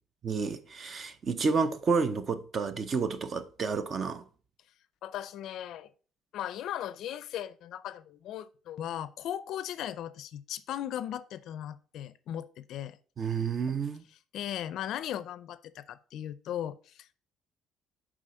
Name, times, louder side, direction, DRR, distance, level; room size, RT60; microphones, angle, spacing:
voice 1, 0.2-4.2 13.2-14.0, right 5 dB, 35° right, 0.7 m, -30 dB
voice 2, 5.0-5.9 6.3-13.0 14.3-17.2, left 11 dB, 65° left, 0.5 m, -37 dB
7.3 x 4.9 x 5.1 m
cardioid pair, 145°, 0 cm